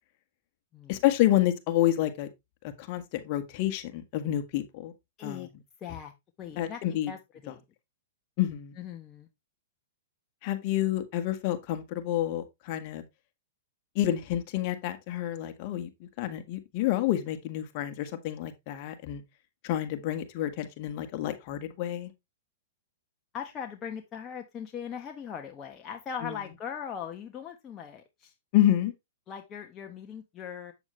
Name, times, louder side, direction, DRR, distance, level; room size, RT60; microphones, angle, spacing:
voice 1, 0.9-2.3 2.8-4.9 5.2-5.5 6.6-7.1 8.4-8.7 10.4-13.0 13.9-19.2 19.6-22.1 26.2-26.3 28.5-28.9, left 13 dB, 45° left, 1.6 m, -28 dB
voice 2, 5.2-5.5 5.8-6.1 6.4-7.6 8.8-9.3 23.3-28.3 29.3-30.7, left 7 dB, 25° left, 1.2 m, -40 dB
8.2 x 7.1 x 3.2 m
hypercardioid pair, 120°, 0 cm